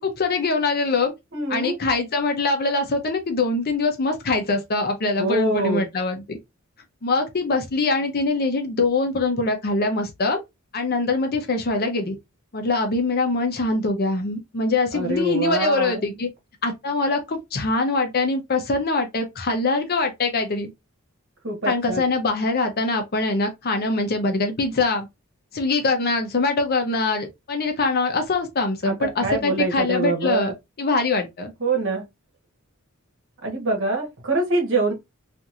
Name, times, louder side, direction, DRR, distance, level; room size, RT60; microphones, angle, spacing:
voice 1, 0.0-1.1 1.5-6.4 7.0-10.4 10.7-12.2 12.5-16.3 16.6-20.7 21.7-25.1 25.5-31.5, left 3 dB, 45° left, 0.7 m, -23 dB
voice 2, 1.3-1.8 5.2-5.8 14.9-16.1 21.4-22.0 28.8-30.5 31.6-32.0 33.4-34.9, right 2 dB, 60° right, 1.1 m, -24 dB
2.9 x 2.5 x 2.4 m
head